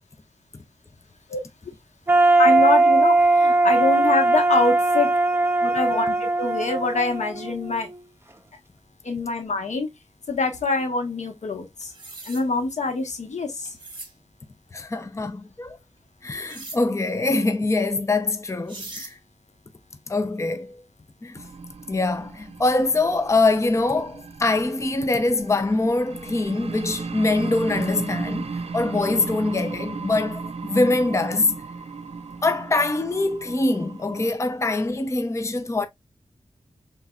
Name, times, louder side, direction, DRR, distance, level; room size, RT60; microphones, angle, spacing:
sound 1, 2.1-8.0, right 2 dB, 20° right, 0.8 m, -19 dB
voice 1, 2.4-5.1 5.6-7.9 9.0-9.9 10.3-11.9 12.2-13.7, left 3 dB, 80° left, 1.3 m, -25 dB
sound 2, 11.8-12.4 13.7-14.1 16.5-16.8 18.3-18.4 18.7-19.1, right 3 dB, 40° right, 1.3 m, -39 dB
voice 2, 14.7-15.8 16.2-19.2 20.1-20.8 21.2-21.4 21.9-31.6 32.4-35.9, left 2 dB, 25° left, 0.6 m, -23 dB
sound 3, 21.3-34.3, right 4 dB, 60° right, 0.5 m, -36 dB
5.5 x 3.8 x 2.4 m
wide cardioid pair, 95°, 12 cm